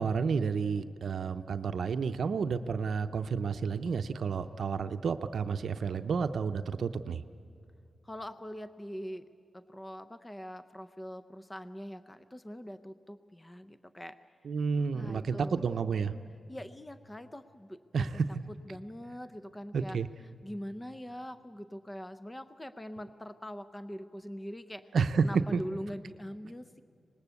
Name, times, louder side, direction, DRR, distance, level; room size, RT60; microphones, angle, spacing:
voice 1, 0.0-7.2 14.4-16.1 17.9-18.3 19.7-20.1 24.9-25.2 25.5-25.6, right 5 dB, 65° right, 9 dB, 0.6 m, -31 dB
voice 2, 8.0-9.3 9.5-14.2 14.9-15.6 16.5-18.2 18.7-20.0 20.4-24.9 25.2-26.8, equal, 15° left, 11 dB, 0.6 m, -43 dB
25.0 x 20.0 x 8.3 m, 2.5 s
wide cardioid pair, 140°, 0 cm